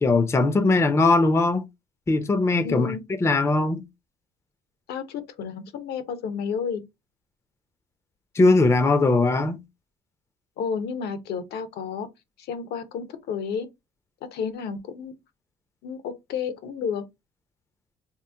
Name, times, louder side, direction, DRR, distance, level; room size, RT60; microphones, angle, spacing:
voice 1, 0.0-1.6 2.1-3.0 3.2-3.8 8.4-9.6, left 3 dB, 15° left, 0.5 m, -20 dB
voice 2, 2.6-3.0 4.9-6.8 10.6-12.1 12.4-13.7 14.3-15.1 15.8-17.0, left 6 dB, 70° left, 0.7 m, -31 dB
3.0 x 2.0 x 3.3 m
cardioid pair, 110°, 17 cm